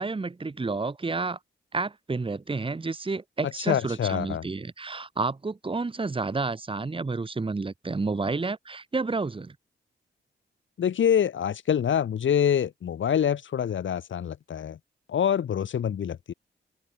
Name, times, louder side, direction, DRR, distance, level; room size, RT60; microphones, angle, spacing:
voice 1, 0.0-1.4 1.7-9.6, right 3 dB, 25° right, 4.2 m, -30 dB
voice 2, 3.7-4.4 10.8-14.8 15.1-16.3, left 9 dB, 80° left, 6.8 m, -25 dB
open air
wide cardioid pair, 120°, 19 cm